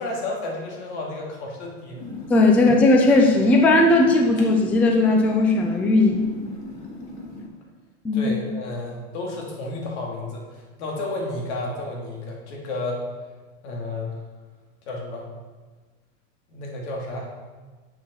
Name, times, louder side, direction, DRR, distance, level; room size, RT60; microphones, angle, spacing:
voice 1, 0.0-2.0 8.1-13.0 13.6-14.1 14.9-15.3 16.5-17.3, left 2 dB, 85° left, -1 dB, 2.8 m, -31 dB
sound 1, 2.0-7.5, left 2 dB, 40° left, 1.8 m, -37 dB
voice 2, 2.3-6.3 8.0-8.3, left 2 dB, 5° left, 2 dB, 0.3 m, -17 dB
7.5 x 6.7 x 6.1 m, 1.4 s
supercardioid pair, 170°, 33 cm